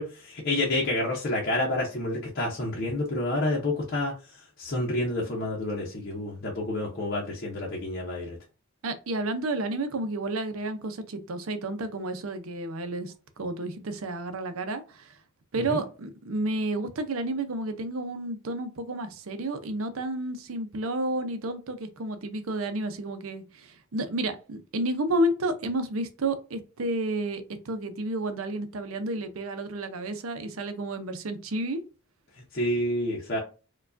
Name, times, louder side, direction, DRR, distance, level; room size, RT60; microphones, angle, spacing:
voice 1, 0.0-4.1 4.6-8.4 15.7-15.8 32.5-33.4, left 1 dB, 45° left, 0.7 m, -29 dB
voice 2, 8.8-15.1 15.5-31.8, right 1 dB, 70° right, 0.6 m, -31 dB
4.5 x 2.3 x 2.5 m
head